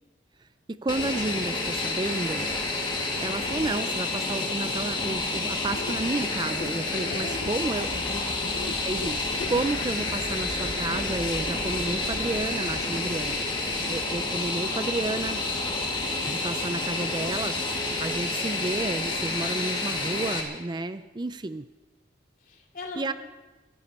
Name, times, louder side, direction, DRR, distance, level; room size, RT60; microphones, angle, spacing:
voice 1, 0.4-2.5 3.2-7.9 8.8-13.4 13.9-15.4 16.3-17.6 18.0-21.7 23.0-23.1, right 2 dB, 25° right, 12 dB, 0.4 m, -31 dB
Fixed-wing aircraft airplane, 0.9-20.4, left 2 dB, 25° left, 2.1 m, -29 dB
sound 1, 4.1-11.0, left 3 dB, 70° left, 0.8 m, -43 dB
voice 2, 7.0-8.5 22.4-23.1, left 1 dB, 50° left, 1 dB, 2.8 m, -40 dB
sound 2, 7.2-13.5, right 1 dB, 70° right, 2.7 m, -42 dB
24.0 x 14.0 x 4.3 m, 1.2 s
head